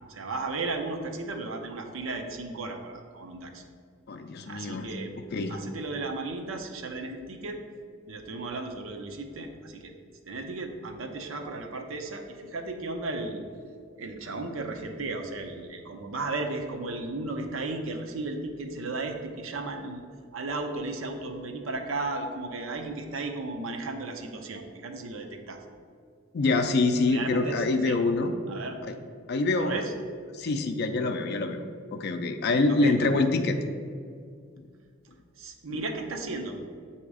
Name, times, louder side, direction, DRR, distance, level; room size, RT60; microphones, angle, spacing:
voice 1, 0.1-3.6 4.5-5.2 5.5-7.6 8.1-9.9 10.3-13.4 14.0-20.0 20.3-25.6 27.1-28.0 28.5-28.8 29.6-29.9 32.7-33.0 35.4-36.6, right 3 dB, 75° right, 4 dB, 0.6 m, -35 dB
voice 2, 4.1-4.9 5.3-5.6 26.3-28.3 28.9-29.0 29.3-29.8 30.3-31.6 31.9-33.6 34.6-34.7 35.7-35.8, left 3 dB, 55° left, 6 dB, 0.4 m, -25 dB
7.9 x 2.8 x 4.8 m, 2.2 s
head